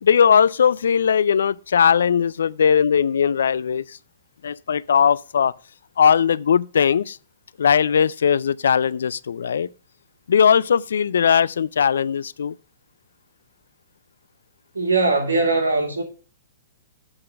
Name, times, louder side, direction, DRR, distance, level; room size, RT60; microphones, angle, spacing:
voice 1, 0.0-4.0 4.4-5.5 6.0-7.2 7.6-9.7 10.3-12.5, left 7 dB, 75° left, 0.3 m, -19 dB
voice 2, 14.7-16.0, right 3 dB, 90° right, 2.3 m, -20 dB
7.8 x 3.8 x 6.4 m
hypercardioid pair, 125°, 0 cm